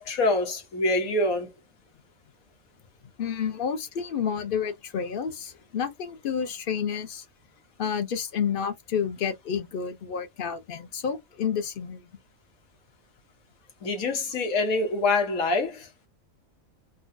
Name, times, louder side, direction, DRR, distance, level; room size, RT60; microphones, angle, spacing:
voice 1, 0.0-1.5 13.8-15.9, left 2 dB, 85° left, 1.5 m, -25 dB
voice 2, 3.2-7.2 7.8-12.0, left 7 dB, 50° left, 0.7 m, -30 dB
3.7 x 2.2 x 2.6 m
omnidirectional pair, 1.4 m